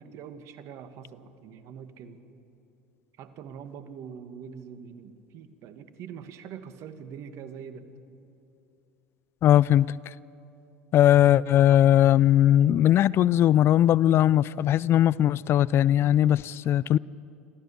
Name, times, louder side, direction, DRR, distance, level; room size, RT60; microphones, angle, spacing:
voice 1, 0.0-2.2 3.2-7.9, right 7 dB, 55° right, 1.6 m, -43 dB
voice 2, 9.4-9.9 10.9-17.0, left 11 dB, 45° left, 0.4 m, -19 dB
26.5 x 15.0 x 7.1 m
hypercardioid pair, 85°, 6 cm